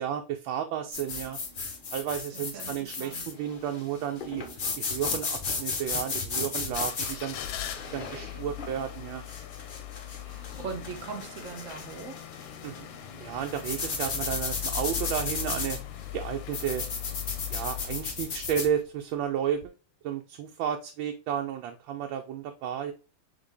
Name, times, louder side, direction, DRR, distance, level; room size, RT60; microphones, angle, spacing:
voice 1, 0.0-1.4 1.9-4.4 4.8-7.4 7.9-9.2 12.6-12.9 13.2-15.8 16.1-16.9 17.5-19.6 20.0-22.9, right 9 dB, 85° right, 1.4 m, -32 dB
sound 1, 0.9-18.7, left 4 dB, 60° left, 0.5 m, -35 dB
voice 2, 2.3-2.7 3.0-3.3 10.2-12.2, right 5 dB, 55° right, 0.9 m, -40 dB
sound 2, 6.6-19.1 19.6-19.7, left 13 dB, 85° left, 1.3 m, -40 dB
4.0 x 3.8 x 3.4 m
omnidirectional pair, 2.1 m